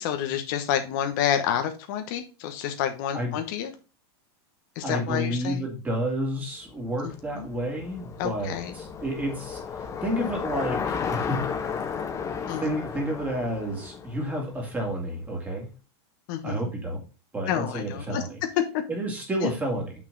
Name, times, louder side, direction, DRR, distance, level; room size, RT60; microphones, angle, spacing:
voice 1, 0.0-3.7 4.7-5.6 7.0-7.1 7.4-7.5 8.2-8.7 12.5-12.7 16.3-16.6 17.5-18.2 18.7-18.8 19.4-19.5, left 9 dB, 45° left, 6 dB, 1.1 m, -29 dB
voice 2, 4.8-11.9 12.4-15.7 16.4-17.0 17.3-18.4 18.9-19.9, equal, 10° right, 0 dB, 2.4 m, -30 dB
Bicycle, 6.8-15.1, left 6 dB, 20° left, 1.6 m, -34 dB
6.7 x 6.1 x 3.9 m, 0.32 s
supercardioid pair, 160°, 14 cm